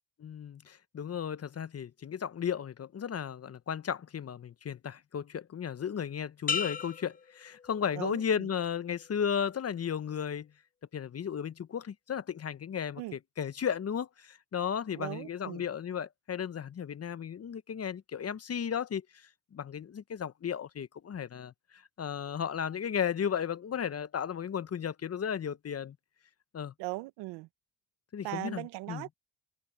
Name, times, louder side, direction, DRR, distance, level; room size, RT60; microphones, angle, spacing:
voice 1, 0.2-10.5 10.9-19.0 19.5-26.0 26.5-26.7 28.1-29.0, left 8 dB, 35° left, 1.1 m, -34 dB
sound 1, 6.5-8.3 8.8-9.2, left 6 dB, 20° left, 0.7 m, -37 dB
voice 2, 8.0-8.5 13.0-13.2 14.9-15.7 26.8-27.5 28.2-29.2, right 21 dB, 80° right, 1.2 m, -39 dB
supercardioid pair, 70°, 41 cm